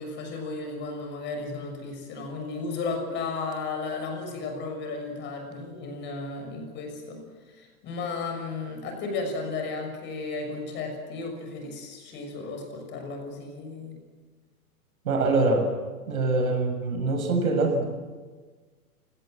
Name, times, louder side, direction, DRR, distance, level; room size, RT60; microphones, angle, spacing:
voice 1, 0.0-7.2 7.5-13.9, left 3 dB, 25° left, 4 dB, 6.3 m, -34 dB
voice 2, 15.0-15.7 16.1-17.8, right 2 dB, 75° right, 5 dB, 7.1 m, -24 dB
29.0 x 17.5 x 7.8 m, 1.4 s
hypercardioid pair, 145°, 44 cm